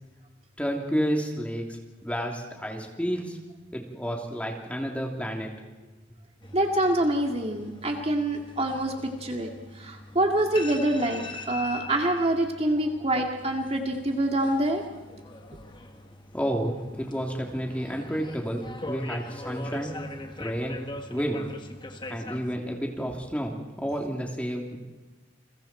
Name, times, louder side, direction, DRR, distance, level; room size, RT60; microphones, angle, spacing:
voice 1, 0.6-3.4 3.7-5.5 16.3-19.9 20.4-20.8 21.1-21.4 22.1-24.8, equal, 5° left, 1 dB, 3.2 m, -30 dB
sound 1, 6.4-22.6, left 2 dB, 25° left, 1.7 m, -42 dB
voice 2, 6.5-8.9 9.2-14.8, right 1 dB, 35° right, 2 dB, 2.2 m, -26 dB
29.5 x 23.0 x 4.5 m, 1.2 s
head